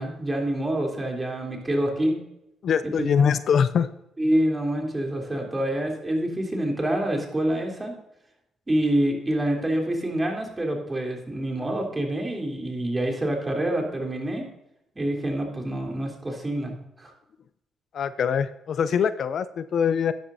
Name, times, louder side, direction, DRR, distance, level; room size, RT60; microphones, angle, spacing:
voice 1, 0.0-2.1 2.8-3.3 4.2-7.9 8.7-14.5 14.9-17.1, right 1 dB, 20° right, 1 dB, 3.3 m, -27 dB
voice 2, 2.6-3.9 17.9-20.1, left 7 dB, 60° left, 13 dB, 0.5 m, -23 dB
12.5 x 10.0 x 2.7 m, 0.85 s
cardioid pair, 90°, 0 cm